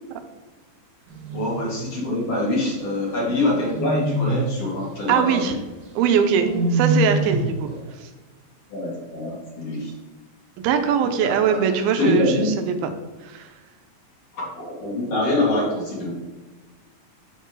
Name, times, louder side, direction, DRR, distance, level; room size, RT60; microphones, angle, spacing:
sound 1, 1.1-2.0 3.3-4.6 6.0-7.6, right 2 dB, 60° right, 2.1 m, -25 dB
voice 1, 1.3-5.4 8.7-9.9 11.2-11.6 12.0-12.4 14.3-16.1, left 2 dB, 50° left, -4 dB, 2.7 m, -24 dB
voice 2, 5.1-5.6 6.0-7.7 8.0-8.1 10.6-12.8 13.2-13.5, right 7 dB, 90° right, 7 dB, 2.5 m, -21 dB
7.0 x 6.6 x 3.1 m, 1.2 s
omnidirectional pair, 4.2 m